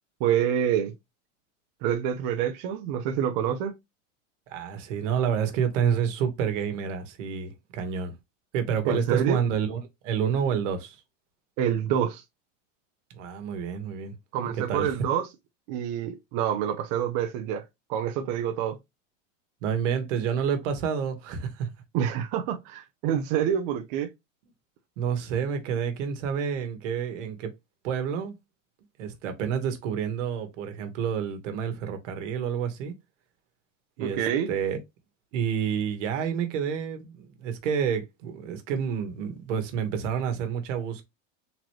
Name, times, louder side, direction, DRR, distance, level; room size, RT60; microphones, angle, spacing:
voice 1, 0.2-0.9 1.8-3.7 8.8-9.4 11.6-12.2 14.3-15.2 15.7-17.6 17.9-18.8 21.9-24.1 34.0-34.5, right 9 dB, 35° right, 0.5 m, -27 dB
voice 2, 4.5-8.1 8.5-11.0 13.1-14.1 14.7-14.9 19.6-21.7 25.0-27.5 27.8-28.4 29.0-32.9 34.0-34.2 34.5-34.8 35.3-41.0, right 7 dB, 70° right, 1.3 m, -29 dB
3.8 x 3.0 x 3.0 m
supercardioid pair, 165°, 38 cm